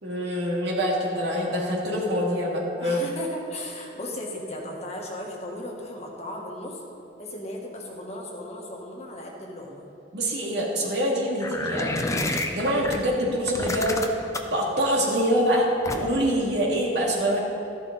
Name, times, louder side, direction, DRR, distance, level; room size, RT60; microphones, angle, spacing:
voice 1, 0.0-3.0 10.1-12.0 12.5-14.0 14.5-17.4, equal, 75° right, -4 dB, 2.6 m, -25 dB
voice 2, 2.8-6.8 7.2-9.9, left 1 dB, 40° left, -1 dB, 1.7 m, -36 dB
sound 1, 11.4-13.0 13.5-14.6 15.8-16.3, left 2 dB, 20° left, 0.7 m, -29 dB
14.0 x 11.0 x 4.1 m, 2.7 s
head